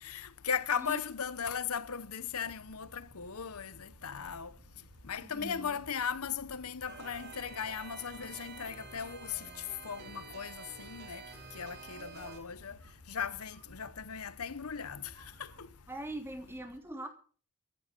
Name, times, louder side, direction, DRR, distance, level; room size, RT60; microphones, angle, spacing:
voice 1, 0.0-4.5 5.1-9.4 9.8-11.2 11.5-12.8 13.1-15.1 15.4-15.7, left 7 dB, 80° left, 0.9 m, -37 dB
sound 1, 2.4-15.7, right 1 dB, 70° right, 2.9 m, -58 dB
voice 2, 5.2-5.7 15.9-17.1, right 1 dB, 10° right, 3.0 m, -42 dB
sound 2, 6.8-12.4, right 4 dB, 45° right, 3.8 m, -49 dB
14.5 x 9.6 x 8.1 m
head